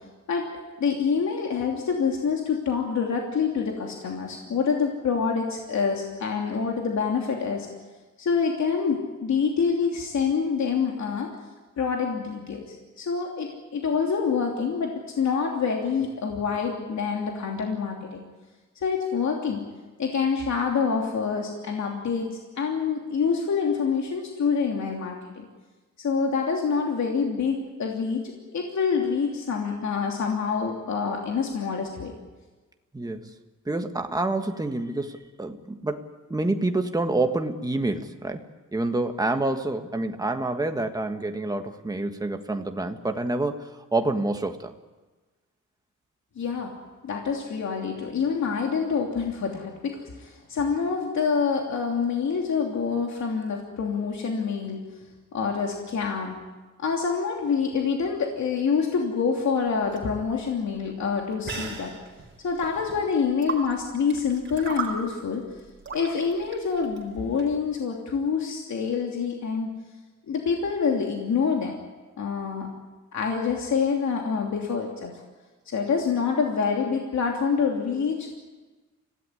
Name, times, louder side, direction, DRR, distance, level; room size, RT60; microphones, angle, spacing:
voice 1, 0.8-7.7 8.2-11.3 11.8-18.2 18.8-19.6 20.0-25.5 26.0-32.1 46.4-46.7 47.0-54.8 55.3-56.4 56.8-61.9 62.4-65.4 65.9-69.7 70.3-71.7 72.2-72.7 73.1-75.1 75.7-78.4, left 5 dB, 65° left, 0 dB, 3.0 m, -26 dB
voice 2, 32.9-33.3 33.7-36.0 36.3-38.4 38.7-44.7, right 2 dB, 10° right, 5 dB, 1.5 m, -27 dB
sound 1, 59.6-67.6, right 4 dB, 40° right, 4.5 m, -38 dB
25.5 x 17.0 x 9.8 m, 1.3 s
wide cardioid pair, 160°, 30 cm